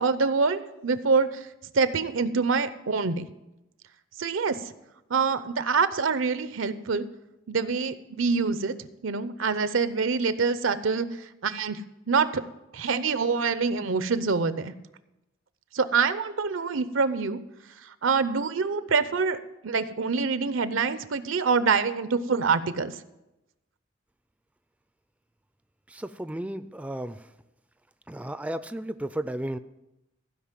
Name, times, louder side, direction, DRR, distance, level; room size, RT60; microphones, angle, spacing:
voice 1, 0.0-1.5 1.7-3.3 4.2-4.6 5.1-7.1 7.5-8.7 9.0-11.1 11.4-11.8 12.1-12.4 12.7-14.7 15.7-17.4 18.0-22.9, right 5 dB, 90° right, 13 dB, 0.7 m, -25 dB
voice 2, 25.9-27.3 28.1-29.6, right 1 dB, 5° right, 12 dB, 0.3 m, -34 dB
15.5 x 5.2 x 7.4 m, 0.93 s
head